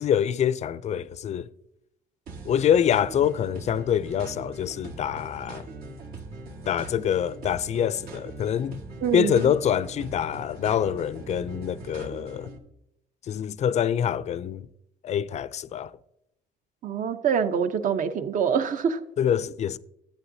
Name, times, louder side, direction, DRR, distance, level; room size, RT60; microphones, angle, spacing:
voice 1, 0.0-1.5 2.5-5.7 6.7-8.8 9.1-12.5 13.2-14.7 15.0-16.0 19.2-19.8, left 9 dB, 40° left, 0.4 m, -25 dB
sound 1, 2.3-12.6, right 2 dB, 65° right, 1.7 m, -41 dB
voice 2, 9.0-9.5 16.8-19.0, right 7 dB, 50° right, 0.8 m, -25 dB
11.5 x 8.6 x 2.7 m
cardioid pair, 110°, 17 cm